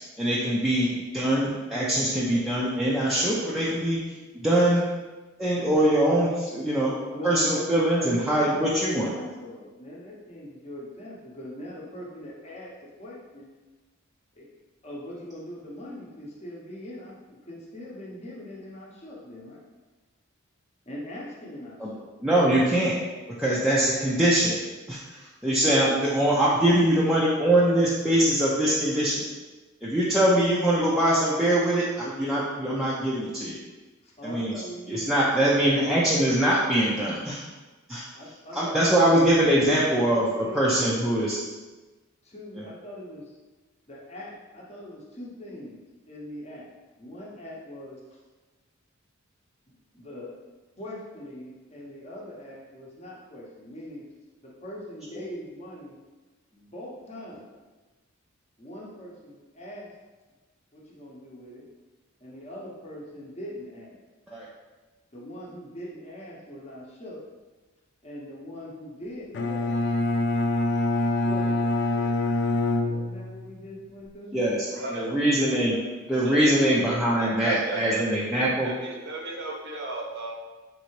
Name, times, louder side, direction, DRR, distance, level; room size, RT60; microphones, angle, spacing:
voice 1, 0.2-4.0 4.3-4.8 5.4-6.9 7.2-9.1 21.8-21.9 22.2-23.0 23.4-24.6 24.9-29.2 29.8-33.6 34.2-34.5 34.9-37.4 37.9-38.0 38.5-41.4 42.6-42.7 55.1-55.2 64.3-64.5 74.3-74.6 74.9-75.8 76.1-78.7, right 1 dB, ahead, -8 dB, 0.4 m, -23 dB
voice 2, 7.1-12.7 13.0-13.5 14.4-14.5 14.8-19.7 20.9-22.1 34.0-36.3 38.1-39.1 39.9-41.2 42.2-43.3 43.9-45.8 46.1-46.7 47.0-48.2 49.7-50.4 50.8-54.1 54.4-56.0 56.5-57.6 58.6-59.9 60.7-61.6 62.2-64.0 65.1-67.2 68.0-69.8 71.2-72.1 72.4-74.4 75.1-76.2, left 1 dB, 30° left, -4 dB, 0.8 m, -42 dB
Bowed string instrument, 69.3-73.5, left 2 dB, 55° left, 0.4 m, -25 dB
voice 3, 74.7-75.1 76.2-76.5 77.2-80.3, right 2 dB, 55° right, -1 dB, 0.7 m, -34 dB
3.9 x 3.3 x 3.1 m, 1.2 s
head